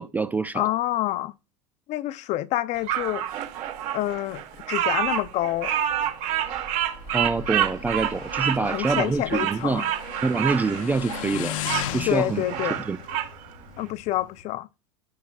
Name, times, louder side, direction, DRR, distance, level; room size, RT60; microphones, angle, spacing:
voice 1, 0.0-0.7 7.1-9.9 10.2-11.6 11.9-12.4 12.9-13.0, right 3 dB, 10° right, 0.3 m, -26 dB
voice 2, 0.5-1.3 1.9-3.3 3.9-4.4 4.7-5.7 8.6-9.9 12.1-12.8 13.8-14.7, left 15 dB, 45° left, 0.7 m, -27 dB
Bird vocalization bird call bird song, 2.9-11.9 12.3-13.3, right 10 dB, 50° right, 2.5 m, -28 dB
Motorcycle, 6.1-14.4, left 11 dB, 80° left, 1.1 m, -37 dB
16.0 x 5.8 x 2.4 m
supercardioid pair, 145°, 17 cm